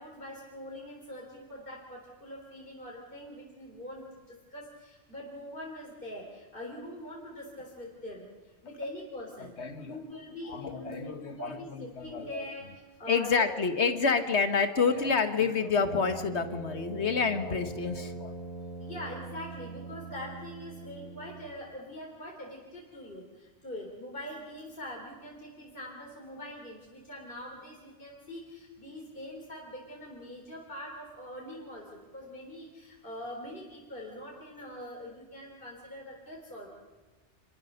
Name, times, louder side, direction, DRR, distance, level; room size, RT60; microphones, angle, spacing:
voice 1, 0.0-9.6 9.8-13.5 13.9-14.0 18.8-36.7, left 1 dB, 50° left, -1 dB, 3.8 m, -43 dB
voice 2, 9.6-10.0 10.5-12.5 13.1-18.3, left 5 dB, 75° left, 8 dB, 1.8 m, -28 dB
Brass instrument, 15.7-21.6, right 2 dB, 35° left, 4.2 m, -42 dB
28.0 x 22.0 x 6.7 m, 1.3 s
omnidirectional pair, 1.2 m